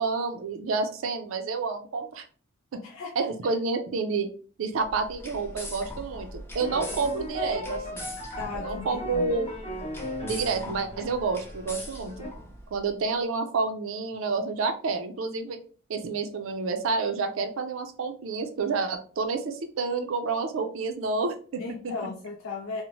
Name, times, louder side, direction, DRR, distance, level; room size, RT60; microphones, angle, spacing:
voice 1, 0.0-2.2 2.7-2.8 3.2-4.3 4.6-8.1 8.5-9.5 10.2-12.3 12.7-15.6 15.9-21.9, right 4 dB, 90° right, 7 dB, 0.5 m, -29 dB
voice 2, 2.8-3.5 8.4-9.3 21.6-22.8, left 4 dB, 90° left, 1 dB, 0.4 m, -37 dB
sound 1, 4.8-12.9, left 1 dB, 10° left, 0.4 m, -42 dB
sound 2, 6.6-12.3, equal, 30° left, 0.8 m, -37 dB
2.7 x 2.1 x 2.9 m, 0.41 s
head